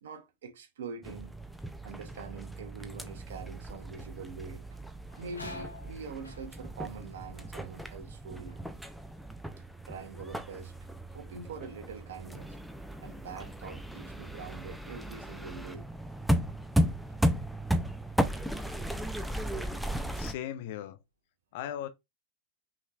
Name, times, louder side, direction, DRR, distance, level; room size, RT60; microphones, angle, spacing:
voice 1, 0.0-1.4 1.8-4.8 5.2-8.6 9.9-10.7 11.1-12.6 13.0-15.9, right 5 dB, 60° right, 0.9 m, -44 dB
sound 1, 1.0-20.3, equal, ahead, 0.5 m, -35 dB
sound 2, 5.1-10.2 10.5-11.1 11.6-14.5 14.8-14.9 15.9-16.1 16.5-17.7 18.1-18.3 18.9-19.5 19.8-21.0, left 3 dB, 80° left, 1.0 m, -53 dB
voice 2, 20.1-21.0 21.5-21.9, left 11 dB, 50° left, 0.6 m, -37 dB
5.7 x 3.1 x 2.4 m
figure-of-eight pair, 90°, 0 cm